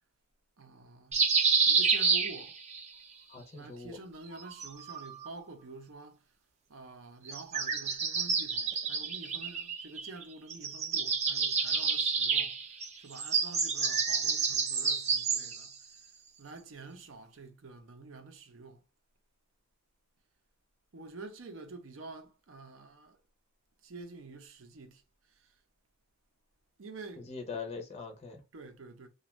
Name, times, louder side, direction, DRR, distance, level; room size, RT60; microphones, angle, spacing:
voice 1, 0.6-1.2 1.7-2.6 3.5-6.2 6.7-12.5 13.0-15.7 16.4-18.8 20.9-23.2 23.8-25.0 25.4-25.5 26.8-27.3 28.5-29.1, right 3 dB, 75° right, 0.6 m, -48 dB
sound 1, 1.1-2.9 4.3-5.3 7.3-10.2 10.5-15.7, right 5 dB, 35° right, 0.4 m, -29 dB
voice 2, 3.3-4.0 13.7-13.9 27.2-28.4, left 4 dB, 30° left, 0.5 m, -42 dB
2.5 x 2.3 x 3.0 m
head